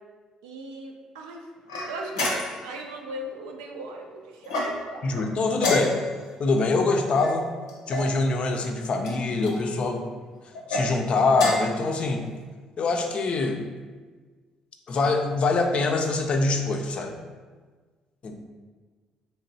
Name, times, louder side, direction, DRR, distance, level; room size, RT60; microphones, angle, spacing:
voice 1, 0.4-1.5 1.8-2.3 2.6-5.0, right 1 dB, 80° right, 1 dB, 0.4 m, -38 dB
sound 1, 1.7-2.7 4.4-5.0 5.6-6.3 7.2-8.1 9.0-9.6 10.5-10.9 11.3-11.8, left 1 dB, 85° left, 0.7 m, -29 dB
voice 2, 5.0-6.0 6.4-7.5 7.9-10.0 10.7-12.2 12.8-13.6 14.9-17.1 18.2-18.4, left 3 dB, 50° left, 4 dB, 0.4 m, -24 dB
3.4 x 2.9 x 2.7 m, 1.4 s
hypercardioid pair, 50°, 2 cm